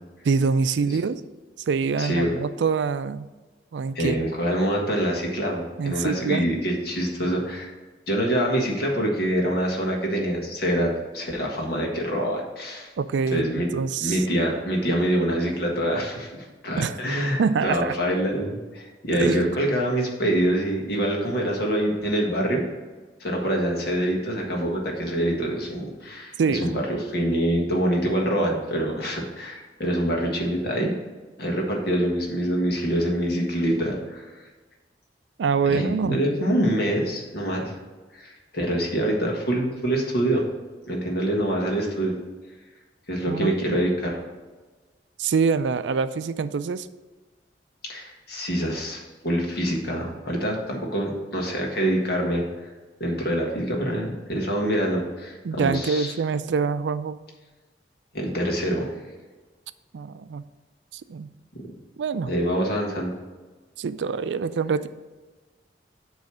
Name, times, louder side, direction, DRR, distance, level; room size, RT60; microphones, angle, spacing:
voice 1, 0.2-1.2 1.7-3.3 3.7-4.2 5.8-6.5 13.0-14.2 16.8-17.0 17.4-17.9 19.1-19.6 26.4-26.7 35.4-36.2 43.3-43.8 45.2-46.9 55.4-57.2 59.9-60.4 60.9-61.3 62.0-62.3 63.8-64.9, right 5 dB, 90° right, 14 dB, 0.4 m, -25 dB
voice 2, 2.0-2.3 3.9-7.7 8.1-12.9 13.3-13.7 14.0-22.6 23.2-30.9 31.4-34.4 35.6-37.7 38.1-40.4 40.9-42.1 43.1-44.2 47.8-52.4 53.0-56.1 58.1-58.9 62.3-63.1, right 1 dB, 60° left, 0 dB, 1.6 m, -25 dB
8.9 x 3.2 x 6.2 m, 1.3 s
head